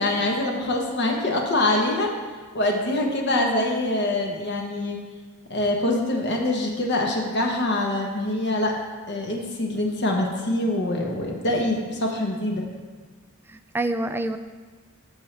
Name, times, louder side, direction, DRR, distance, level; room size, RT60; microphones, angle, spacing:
voice 1, 0.0-2.1 2.5-5.0 5.5-8.8 9.1-12.6, left 1 dB, 55° left, 0 dB, 1.1 m, -24 dB
voice 2, 13.5-14.4, right 2 dB, 10° right, 9 dB, 0.3 m, -28 dB
13.0 x 5.8 x 3.3 m, 1.4 s
head